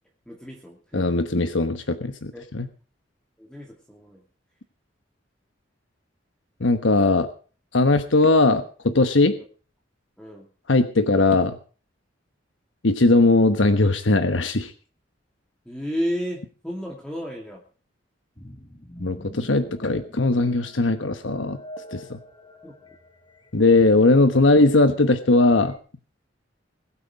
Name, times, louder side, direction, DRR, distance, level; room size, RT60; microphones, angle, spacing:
voice 1, 0.3-1.3 2.3-2.4 3.4-4.2 9.4-9.5 10.2-10.5 15.7-17.6 22.6-22.7, equal, 5° left, -1 dB, 2.6 m, -33 dB
voice 2, 0.9-2.7 6.6-7.3 7.7-9.4 10.7-11.6 12.8-14.7 19.0-21.6 21.9-22.2 23.5-25.7, left 2 dB, 80° left, 9 dB, 1.2 m, -19 dB
sound 1, 18.4-25.8, equal, 25° left, 2.1 m, -46 dB
21.5 x 8.7 x 4.9 m, 0.38 s
head